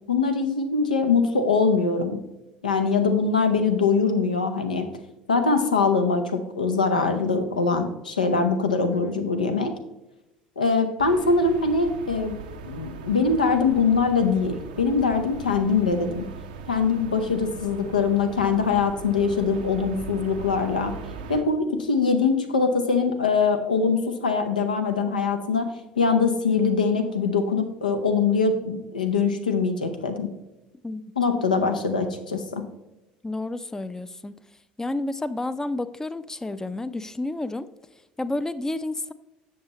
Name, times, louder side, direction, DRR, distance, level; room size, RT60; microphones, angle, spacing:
voice 1, 0.1-2.2 2.6-4.9 5.3-9.7 10.6-12.3 12.6-16.3 16.7-20.9 21.3-30.3 31.2-32.6, left 4 dB, 85° left, 6 dB, 0.7 m, -23 dB
sound 1, 11.0-21.4, right 5 dB, 75° right, 0.6 m, -39 dB
voice 2, 33.2-34.3 34.8-37.7 38.2-39.1, left 2 dB, 10° left, 14 dB, 0.4 m, -30 dB
7.3 x 6.8 x 3.0 m, 0.98 s
figure-of-eight pair, 65°, 4 cm